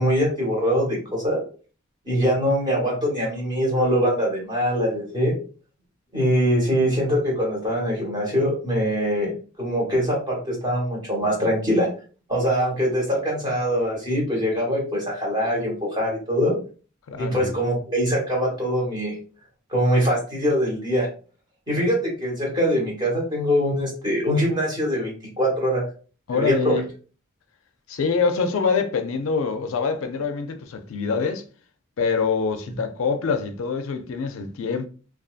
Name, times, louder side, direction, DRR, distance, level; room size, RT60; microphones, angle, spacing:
voice 1, 0.0-1.4 2.0-5.4 6.1-9.3 9.6-11.9 12.3-16.5 17.2-19.2 19.7-21.1 21.7-25.1 25.4-25.8 26.3-26.8, equal, 20° right, 1.2 m, -23 dB
voice 2, 17.1-17.5 26.3-26.8 27.9-31.4 32.0-34.9, left 5 dB, 75° left, 0.4 m, -25 dB
2.5 x 2.3 x 2.4 m
head